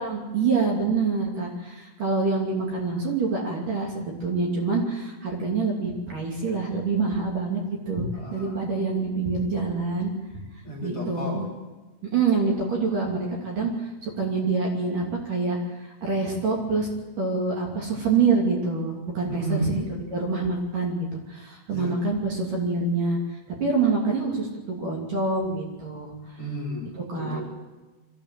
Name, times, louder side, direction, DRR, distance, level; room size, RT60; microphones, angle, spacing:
voice 1, 0.0-8.1 8.3-10.1 10.8-11.5 12.0-16.9 17.2-23.2 23.6-26.1 27.1-27.4, right 4 dB, 50° right, -1 dB, 4.1 m, -26 dB
voice 2, 8.1-8.5 10.6-11.5 19.3-19.7 21.7-22.0 26.4-27.4, right 1 dB, 30° left, -3 dB, 3.9 m, -32 dB
23.5 x 15.0 x 7.7 m, 1.2 s
omnidirectional pair, 5.4 m